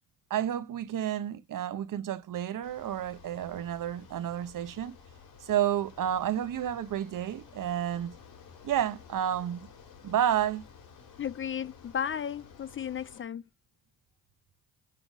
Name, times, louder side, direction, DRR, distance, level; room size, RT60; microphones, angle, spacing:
voice 1, 0.3-4.9 5.4-8.1 8.6-9.6 10.0-10.6, right 10 dB, 60° right, 0.9 m, -30 dB
Bicycle, 2.6-13.2, left 6 dB, 85° left, 2.6 m, -53 dB
voice 2, 11.2-13.5, left 8 dB, 35° left, 0.4 m, -34 dB
6.8 x 3.9 x 6.0 m
cardioid pair, 70°, 36 cm